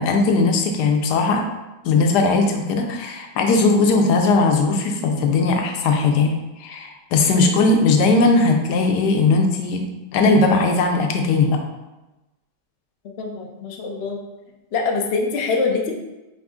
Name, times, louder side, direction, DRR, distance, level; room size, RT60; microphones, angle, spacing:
voice 1, 0.0-1.4 1.8-6.3 6.6-9.9 10.1-11.6, left 3 dB, 75° left, 3 dB, 1.1 m, -18 dB
voice 2, 13.2-14.2 14.7-16.0, left 4 dB, 90° left, 1 dB, 0.5 m, -24 dB
4.8 x 2.5 x 3.5 m, 1.0 s
omnidirectional pair, 1.9 m